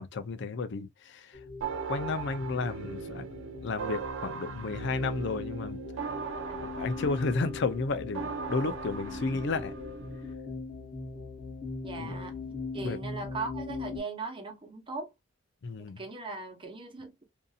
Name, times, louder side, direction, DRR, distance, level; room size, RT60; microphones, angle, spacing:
voice 1, 0.0-1.4 1.9-3.3 3.6-5.8 6.6-9.7 12.0-12.2 12.8-13.0 15.6-16.0, left 3 dB, 60° left, 0.5 m, -32 dB
sound 1, 1.3-14.0, left 4 dB, 40° left, 0.8 m, -41 dB
sound 2, 1.6-10.3, right 5 dB, 80° right, 0.5 m, -39 dB
voice 2, 6.4-6.7 9.1-9.5 11.8-12.4 12.7-15.1 15.8-17.2, right 3 dB, 25° right, 0.8 m, -39 dB
2.7 x 2.6 x 2.3 m
head